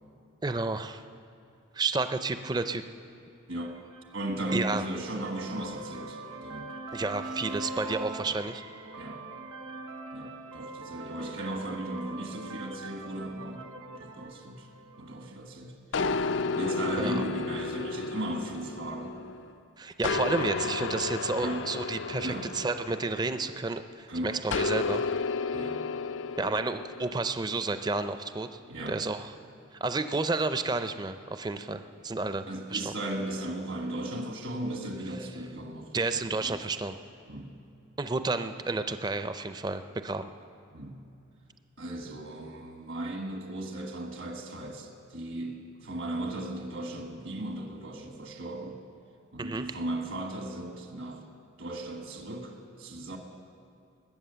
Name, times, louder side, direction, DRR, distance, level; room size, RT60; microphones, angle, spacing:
voice 1, 0.4-1.0 1.7-2.8 4.5-4.8 6.9-8.6 17.0-17.2 19.8-25.0 26.4-28.6 28.9-29.2 29.8-32.9 35.9-37.0 38.0-40.3 49.4-49.8, right 3 dB, 20° right, 10 dB, 0.4 m, -31 dB
sound 1, 3.7-15.4, right 2 dB, 85° right, 1.1 m, -42 dB
voice 2, 4.1-6.8 8.2-8.3 8.9-9.2 10.1-13.7 14.0-14.7 15.0-16.2 16.5-19.2 21.4-21.6 22.2-22.5 24.1-24.5 25.5-25.8 28.7-29.0 32.5-36.6 37.3-37.5 40.7-41.0 41.8-48.8 49.3-51.2 51.6-53.2, right 1 dB, 70° right, 3 dB, 1.5 m, -36 dB
sound 2, 15.9-19.5 20.0-23.8 24.5-27.2, left 4 dB, 65° left, 0.4 m, -32 dB
20.5 x 8.4 x 6.9 m, 2.6 s
head